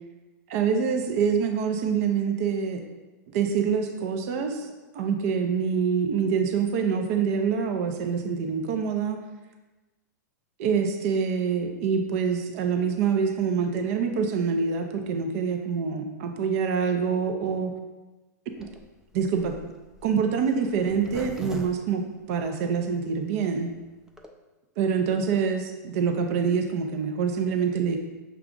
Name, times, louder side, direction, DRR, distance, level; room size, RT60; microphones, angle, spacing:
voice 1, 0.5-2.8 3.3-4.7 4.9-9.2 10.6-17.7 19.1-19.6 20.0-23.7 24.8-28.0, right 6 dB, 55° right, 4 dB, 0.6 m, -25 dB
Zipper (clothing), 18.5-22.9 23.4-23.5 23.6-23.7 23.9-24.3, right 3 dB, 5° right, 0.3 m, -41 dB
5.9 x 2.3 x 3.7 m, 1.1 s
hypercardioid pair, 130°, 9 cm